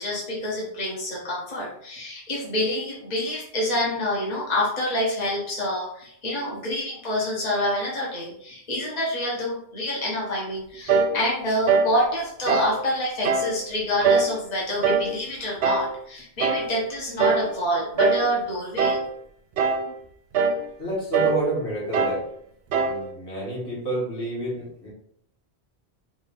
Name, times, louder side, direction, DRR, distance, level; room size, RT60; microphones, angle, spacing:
voice 1, 0.0-19.0, left 1 dB, 40° left, -4 dB, 1.3 m, -27 dB
sound 1, 10.9-11.2 11.7-12.0 12.5-12.8 13.2-13.5 14.0-14.4 14.8-15.1 15.6-15.9 16.4-16.7 17.2-17.5 18.0-18.3 18.8-19.1 19.6-19.9 20.3-20.6 21.1-21.4 21.9-22.2 22.7-23.0, right 4 dB, 70° right, 0.8 m, -22 dB
voice 2, 20.8-22.3 22.8-24.9, right 2 dB, 85° left, -6 dB, 2.1 m, -29 dB
5.0 x 2.7 x 3.5 m, 0.68 s
omnidirectional pair, 1.1 m